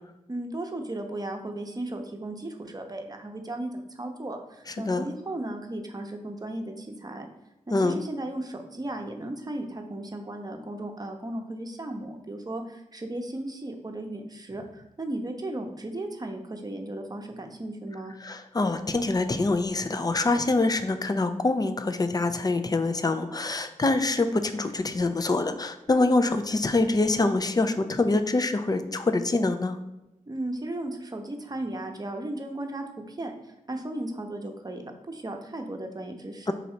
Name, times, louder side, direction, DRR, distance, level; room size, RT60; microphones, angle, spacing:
voice 1, 0.3-7.3 7.7-18.1 30.3-36.5, right 1 dB, 30° right, 4 dB, 0.8 m, -35 dB
voice 2, 4.7-5.1 7.7-8.0 18.2-29.8 36.5-36.6, left 2 dB, 30° left, 9 dB, 0.5 m, -25 dB
4.1 x 2.6 x 4.4 m, 0.93 s
cardioid pair, 40°, 13 cm